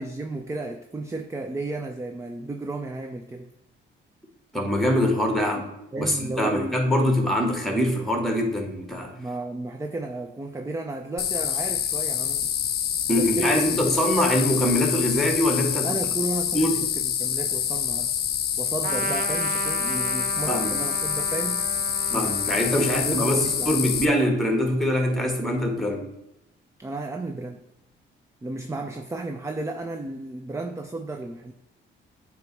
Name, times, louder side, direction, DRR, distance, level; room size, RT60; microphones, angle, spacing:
voice 1, 0.0-3.5 5.9-6.8 9.2-12.5 13.1-14.0 15.8-18.2 18.6-21.7 22.1-22.3 22.7-23.9 26.8-27.7 28.4-31.5, right 2 dB, 15° right, 5 dB, 0.5 m, -33 dB
voice 2, 4.5-5.7 6.0-9.1 13.1-15.9 16.5-16.8 20.5-20.8 22.1-26.1, equal, ahead, 3 dB, 1.5 m, -23 dB
sound 1, 11.2-24.0, left 9 dB, 50° left, 0.5 m, -27 dB
Trumpet, 18.8-24.7, right 6 dB, 55° right, 0.6 m, -35 dB
8.7 x 3.0 x 4.6 m, 0.86 s
cardioid pair, 90°, 20 cm